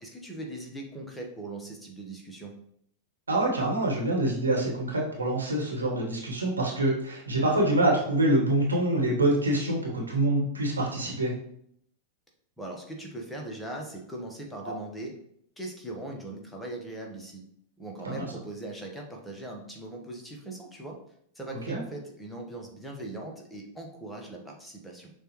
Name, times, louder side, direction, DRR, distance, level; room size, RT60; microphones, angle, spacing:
voice 1, 0.0-2.6 12.6-15.2 15.6-17.4 17.8-21.0 21.3-25.1, right 2 dB, 5° left, 0 dB, 0.9 m, -40 dB
voice 2, 3.3-11.3 14.6-14.7 18.0-18.3 21.7-21.8, right 1 dB, 75° right, -3 dB, 1.2 m, -26 dB
6.3 x 2.3 x 3.0 m, 0.68 s
figure-of-eight pair, 90°, 0 cm